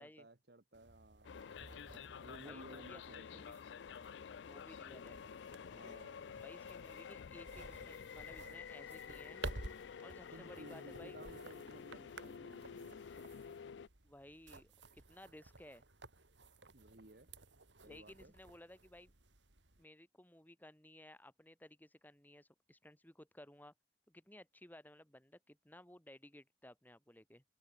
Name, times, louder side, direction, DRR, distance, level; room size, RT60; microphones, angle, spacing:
voice 1, 0.0-1.4 2.2-3.5 5.6-6.4 10.3-13.3 16.7-17.3 17.8-18.3, right 1 dB, 60° right, 1.7 m, -57 dB
sound 1, 0.7-19.8, right 2 dB, 90° right, 3.3 m, -54 dB
sound 2, 1.2-13.9, left 7 dB, 80° left, 0.4 m, -50 dB
voice 2, 2.4-3.0 3.3-3.6 4.4-5.2 6.4-9.4 10.0-11.2 14.0-15.8 17.8-19.1 19.8-23.7 24.1-27.4, left 1 dB, 10° left, 2.5 m, -58 dB
head